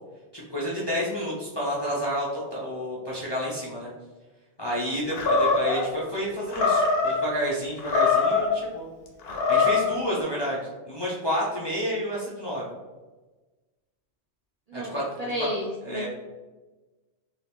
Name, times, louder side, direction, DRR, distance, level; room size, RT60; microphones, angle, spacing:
voice 1, 0.3-3.9 4.6-8.9 9.5-12.7 14.7-15.1 15.4-15.5 15.8-16.1, equal, 35° left, -7 dB, 0.4 m, -30 dB
Animal, 5.1-5.8 6.5-7.2 7.8-8.5 9.2-9.9, left 4 dB, 65° left, 0.8 m, -22 dB
voice 2, 15.3-16.1, equal, 55° right, -4 dB, 0.4 m, -31 dB
2.7 x 2.6 x 3.4 m, 1.2 s
omnidirectional pair, 1.2 m